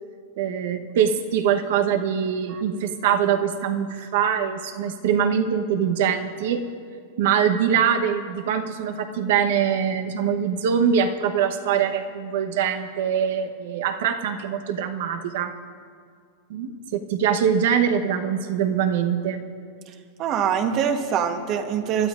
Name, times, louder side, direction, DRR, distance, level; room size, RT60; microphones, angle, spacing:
voice 1, 0.4-6.6 7.2-15.5 16.5-19.4, right 8 dB, 70° right, 6 dB, 1.1 m, -23 dB
voice 2, 20.2-22.1, right 8 dB, 40° right, 7 dB, 1.2 m, -24 dB
24.5 x 12.0 x 2.6 m, 2.2 s
hypercardioid pair, 115°, 0 cm